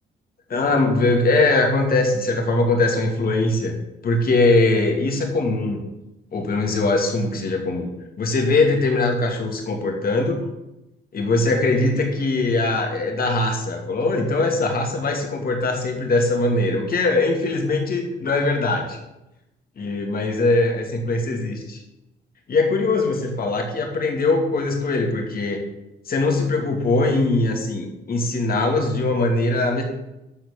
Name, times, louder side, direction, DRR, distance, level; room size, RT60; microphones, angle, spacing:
voice 1, 0.5-3.8 4.0-5.8 6.3-7.9 8.2-10.4 11.1-19.0 19.8-21.8 22.5-25.6 26.1-29.8, left 2 dB, 50° left, 2 dB, 2.5 m, -21 dB
12.5 x 4.5 x 7.3 m, 0.92 s
cardioid pair, 90°, 20 cm